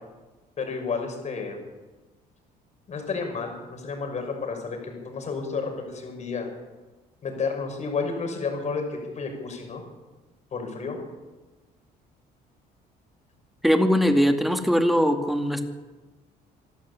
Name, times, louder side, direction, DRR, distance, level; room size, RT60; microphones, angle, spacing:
voice 1, 0.6-1.6 2.9-6.5 7.2-9.8 10.5-11.0, left 4 dB, 45° left, 3 dB, 6.5 m, -31 dB
voice 2, 13.6-15.6, equal, ahead, 5 dB, 2.4 m, -21 dB
25.5 x 12.5 x 8.5 m, 1.2 s
cardioid pair, 110°, 17 cm